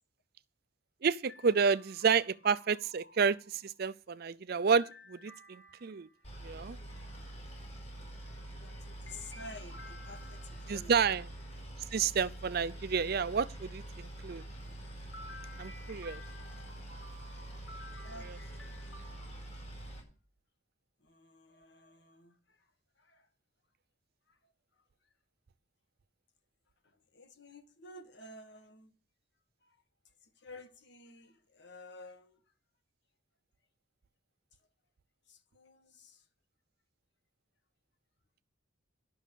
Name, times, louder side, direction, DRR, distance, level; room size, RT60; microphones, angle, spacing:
voice 1, 1.0-6.1 6.4-6.8 10.7-11.2 11.9-14.4 15.6-16.2, right 6 dB, 50° right, 0.5 m, -30 dB
sound 1, 1.3-3.8 4.7-6.3 9.1-10.8 15.1-19.3, left 1 dB, 80° left, 4.1 m, -54 dB
Boat Water vehicle, 6.2-20.0, right 1 dB, 35° left, 4.5 m, -46 dB
voice 2, 6.6-7.0 8.5-10.9 11.7-11.8 18.0-18.5 21.0-22.7 23.0-23.3 24.3-24.8 26.8-29.0 29.6-29.8 30.2-32.4 35.3-36.3, left 2 dB, 60° left, 1.5 m, -53 dB
11.0 x 6.2 x 8.3 m
head